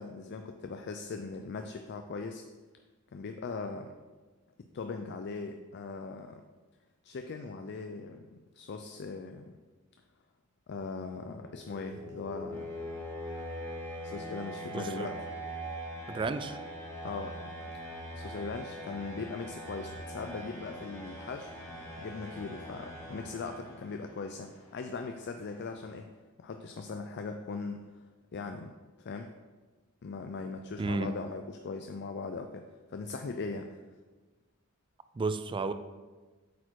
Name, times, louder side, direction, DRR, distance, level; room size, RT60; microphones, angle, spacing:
voice 1, 0.0-2.4 3.1-3.9 4.7-6.4 7.0-9.5 10.7-12.7 14.0-15.1 17.0-17.7 18.1-21.5 22.0-26.1 26.4-27.8 28.3-28.7 29.0-29.3 30.0-33.8, left 4 dB, 55° left, 6 dB, 0.4 m, -40 dB
sound 1, 11.3-24.1, equal, 15° left, 1.9 m, -42 dB
voice 2, 14.7-15.1 16.1-16.6 30.8-31.2 35.1-35.7, right 3 dB, 25° right, 11 dB, 0.3 m, -32 dB
sound 2, 19.1-26.0, left 1 dB, 80° left, 1.6 m, -60 dB
8.1 x 4.4 x 4.5 m, 1.3 s
head